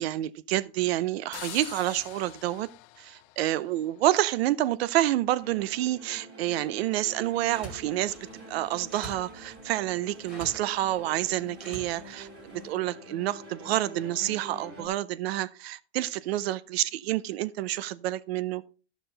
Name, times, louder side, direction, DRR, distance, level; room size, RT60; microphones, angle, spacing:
voice 1, 0.0-2.7 3.0-8.2 8.5-18.6, right 14 dB, 70° right, 0.7 m, -28 dB
sound 1, 1.3-4.2, left 18 dB, 30° left, 0.4 m, -45 dB
sound 2, 5.4-14.9, right 1 dB, 35° right, 3.3 m, -47 dB
sound 3, 7.0-12.7, right 1 dB, ahead, 2.1 m, -48 dB
12.5 x 6.1 x 3.9 m
supercardioid pair, 160°, 32 cm